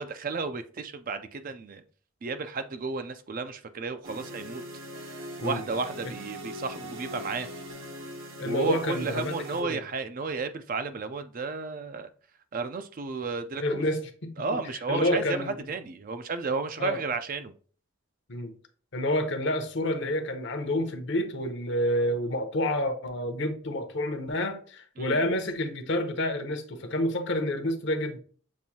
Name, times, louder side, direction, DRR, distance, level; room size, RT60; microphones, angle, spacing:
voice 1, 0.0-1.8 2.2-4.6 5.4-7.5 8.4-12.1 12.5-13.8 14.4-17.5 25.0-25.2, right 4 dB, 40° right, 0.4 m, -33 dB
sound 1, 4.0-9.6, equal, 70° right, 1.1 m, -41 dB
voice 2, 8.4-9.8 13.6-14.6 14.9-15.5 16.8-17.0 18.3-18.5 18.9-28.2, left 1 dB, 60° left, 0.8 m, -29 dB
7.2 x 2.6 x 2.7 m
head